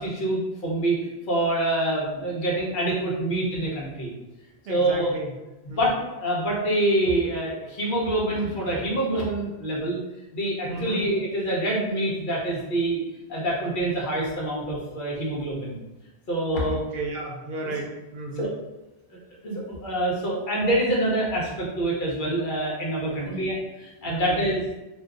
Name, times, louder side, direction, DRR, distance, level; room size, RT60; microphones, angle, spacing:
voice 1, 0.0-4.1 4.7-5.1 5.6-10.0 10.3-15.8 16.3-16.8 17.6-17.7 18.3-18.5 19.1-24.6, right 1 dB, 55° left, -5 dB, 0.9 m, -26 dB
voice 2, 4.7-5.3 5.7-5.8 10.7-11.1 16.6-18.5 23.1-23.4 24.1-24.4, right 2 dB, 75° right, 0 dB, 0.8 m, -33 dB
2.6 x 2.2 x 3.5 m, 1.0 s
omnidirectional pair, 1.0 m